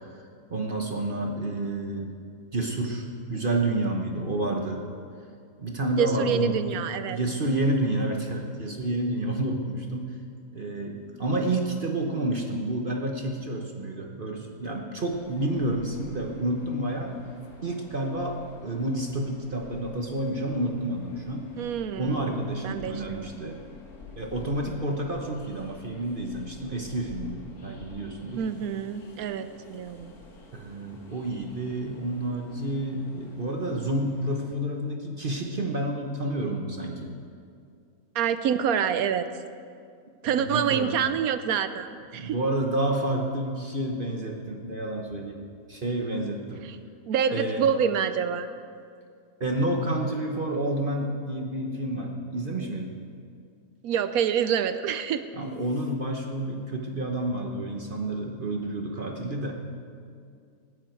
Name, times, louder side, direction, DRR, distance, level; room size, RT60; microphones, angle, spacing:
voice 1, 0.5-2.1 2.5-4.8 5.6-6.8 7.1-10.1 10.5-17.1 17.6-21.5 21.9-23.6 24.1-28.4 30.5-37.1 40.3-41.0 42.1-45.4 45.7-46.6 47.3-47.7 49.4-52.9 55.3-59.6, right 1 dB, 40° right, 1 dB, 1.1 m, -29 dB
voice 2, 6.0-7.2 21.6-22.3 22.6-23.5 28.4-30.1 38.1-39.3 40.2-42.4 46.6-46.8 47.1-48.5 53.8-55.2, right 8 dB, 75° right, 11 dB, 1.1 m, -27 dB
Train, 15.1-34.6, left 4 dB, 85° left, 2.0 m, -49 dB
19.5 x 9.9 x 4.5 m, 2.3 s
omnidirectional pair, 1.6 m